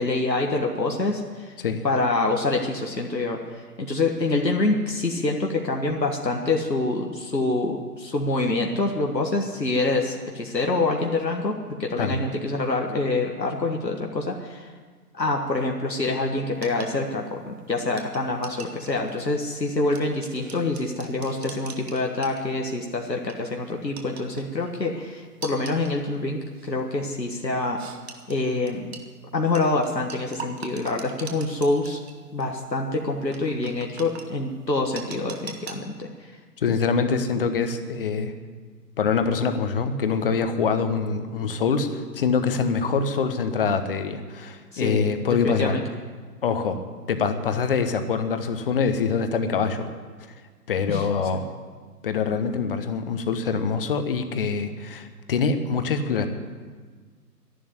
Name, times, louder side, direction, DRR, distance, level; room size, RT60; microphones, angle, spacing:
voice 1, 0.0-1.5 1.8-3.4 3.8-14.7 15.2-27.8 28.3-28.8 29.3-32.0 32.3-36.1 44.7-45.1 45.4-45.8 50.9-51.3, left 2 dB, 85° left, 1 dB, 1.7 m, -26 dB
sound 1, 16.6-22.8 23.1-23.4 24.0-24.7 25.4-26.0 26.5-26.8 27.8-29.1 29.5-32.1 32.4-32.5 33.3-34.3 35.0-35.8, right 6 dB, 40° right, 1.5 m, -41 dB
voice 2, 36.6-38.3 39.0-45.8 46.4-46.8 47.1-49.9 50.7-51.5 52.0-56.3, left 5 dB, 35° left, 9 dB, 1.2 m, -24 dB
12.5 x 11.0 x 9.6 m, 1.5 s
figure-of-eight pair, 130°, 49 cm